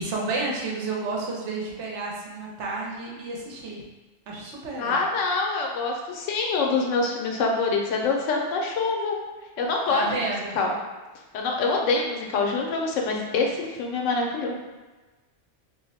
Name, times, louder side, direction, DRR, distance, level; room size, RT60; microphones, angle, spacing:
voice 1, 0.0-3.8 4.3-5.0 9.9-10.6, right 3 dB, 70° right, -2 dB, 1.0 m, -31 dB
voice 2, 4.8-9.2 9.6-10.7 11.3-14.6, left 3 dB, 90° left, 0 dB, 0.9 m, -25 dB
2.5 x 2.1 x 3.9 m, 1.2 s
omnidirectional pair, 1.2 m